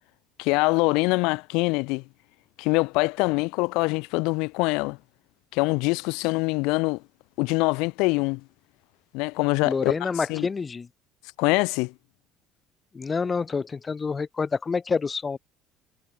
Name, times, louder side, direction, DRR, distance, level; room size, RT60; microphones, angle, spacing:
voice 1, 0.4-2.0 2.6-5.0 5.5-7.0 7.4-8.4 9.1-10.5 11.4-11.9, left 27 dB, 80° left, 2.1 m, -24 dB
voice 2, 9.6-10.9 12.9-15.4, left 5 dB, 20° left, 1.8 m, -27 dB
cardioid pair, 160°, 0 cm